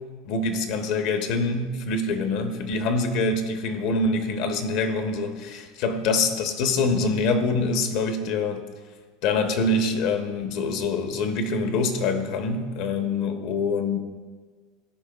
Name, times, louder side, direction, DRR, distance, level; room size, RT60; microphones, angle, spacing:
voice 1, 0.2-8.6 9.2-14.0, left 3 dB, 60° left, 7 dB, 0.7 m, -25 dB
12.5 x 4.6 x 2.3 m, 1.5 s
supercardioid pair, 120°, 0 cm